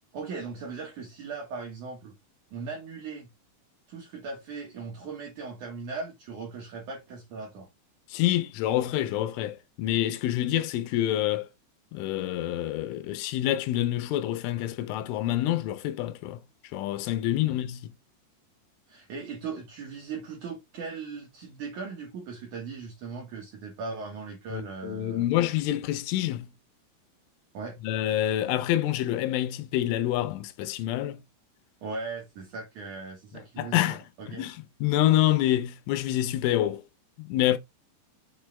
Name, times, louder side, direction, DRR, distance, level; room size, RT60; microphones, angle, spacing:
voice 1, 0.1-2.2 2.5-3.3 3.9-7.7 17.5-17.6 18.9-25.2 27.5-27.8 31.8-34.5, right 4 dB, 60° right, 2.2 m, -38 dB
voice 2, 8.1-11.5 11.9-16.4 16.7-17.9 24.5-26.5 27.8-31.2 33.6-36.8 37.2-37.6, left 13 dB, 90° left, 3.2 m, -27 dB
7.2 x 4.6 x 3.4 m
omnidirectional pair, 5.6 m